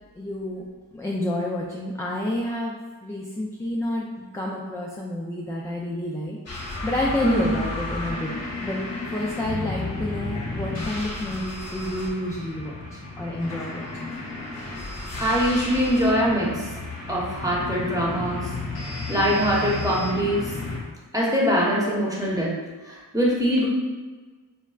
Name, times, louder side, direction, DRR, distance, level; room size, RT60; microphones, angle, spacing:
voice 1, 0.2-0.6 0.9-4.1 4.3-6.4 6.6-8.3 8.6-8.8 9.1-12.8 13.2-14.1, left 1 dB, 10° left, -3 dB, 0.3 m, -29 dB
sound 1, 6.5-20.8, left 2 dB, 40° left, 1.0 m, -33 dB
voice 2, 15.2-16.6 17.1-18.4 19.1-20.5 21.1-22.5 22.9-23.7, equal, 10° right, -5 dB, 0.9 m, -22 dB
4.3 x 2.1 x 2.3 m, 1.3 s
cardioid pair, 50°, 42 cm